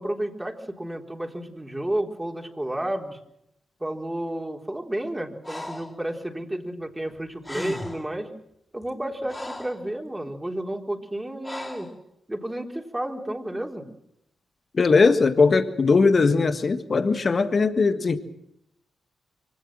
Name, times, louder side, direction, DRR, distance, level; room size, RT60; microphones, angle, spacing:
voice 1, 0.0-3.2 3.8-8.3 8.7-11.9 12.3-13.9, right 1 dB, 15° right, 3.7 m, -31 dB
Breathing, 5.4-6.0 7.1-7.2 7.4-8.1 8.8-9.8 11.4-11.9, left 2 dB, 20° left, 4.7 m, -37 dB
voice 2, 14.7-18.2, left 4 dB, 50° left, 1.6 m, -19 dB
24.0 x 18.0 x 7.6 m
supercardioid pair, 40°, 0 cm